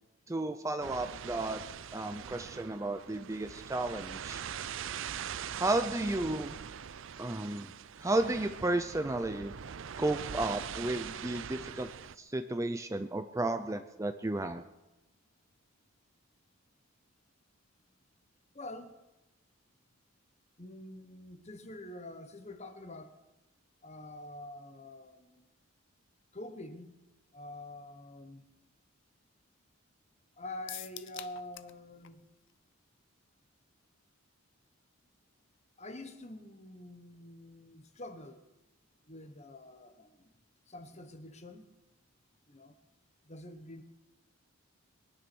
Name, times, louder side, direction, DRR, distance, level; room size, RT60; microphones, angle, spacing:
voice 1, 0.3-1.6 1.9-4.4 5.6-6.5 7.2-7.7 8.0-9.5 10.0-11.9 12.2-14.6, right 2 dB, 15° right, 0.5 m, -33 dB
sound 1, 0.8-12.2, right 8 dB, 60° right, 0.5 m, -42 dB
voice 2, 18.5-19.0 20.6-23.2 23.8-25.5 26.3-27.0 27.3-28.4 30.4-32.3 35.8-38.4 39.1-40.3 40.7-41.7 42.5-42.7 43.2-43.8, left 1 dB, 30° left, 1.3 m, -46 dB
sound 2, 30.7-31.8 32.0-32.1 32.5-32.6, left 13 dB, 55° left, 0.6 m, -44 dB
22.5 x 9.8 x 6.2 m
head